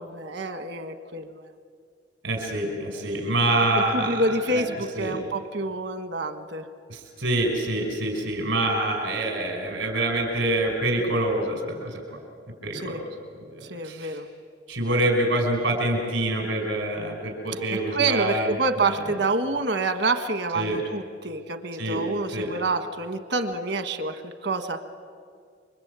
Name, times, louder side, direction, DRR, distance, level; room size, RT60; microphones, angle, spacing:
voice 1, 0.0-1.4 3.7-6.6 12.7-13.0 13.7-14.3 17.9-24.8, right 2 dB, 60° right, 8 dB, 1.5 m, -27 dB
voice 2, 2.2-4.7 5.0-5.3 6.9-12.2 12.6-13.1 13.5-14.2 14.7-18.5 18.8-19.0 20.5-20.8 21.8-22.0 22.3-22.5, right 1 dB, 80° right, 2 dB, 5.4 m, -26 dB
29.0 x 24.5 x 8.3 m, 2.1 s
head